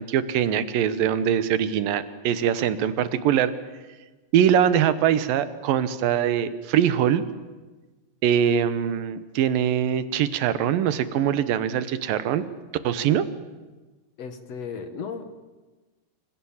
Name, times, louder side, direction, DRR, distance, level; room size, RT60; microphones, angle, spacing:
voice 1, 0.0-3.5 4.3-7.2 8.2-12.5 12.8-13.3, right 9 dB, 80° right, 13 dB, 2.8 m, -22 dB
voice 2, 14.2-15.2, left 6 dB, 55° left, 8 dB, 2.3 m, -35 dB
26.0 x 25.5 x 7.3 m, 1.2 s
omnidirectional pair, 4.0 m